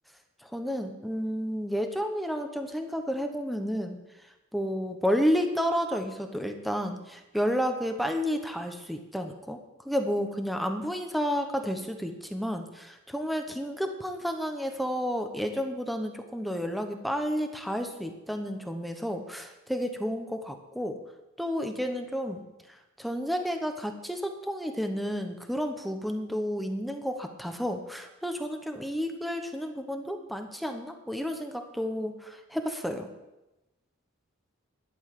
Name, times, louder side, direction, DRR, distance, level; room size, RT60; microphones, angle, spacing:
voice 1, 0.5-4.0 4.5-9.6 9.8-21.0 21.4-22.5 23.0-33.1, equal, ahead, 5 dB, 1.1 m, -31 dB
12.0 x 7.2 x 9.1 m, 0.99 s
head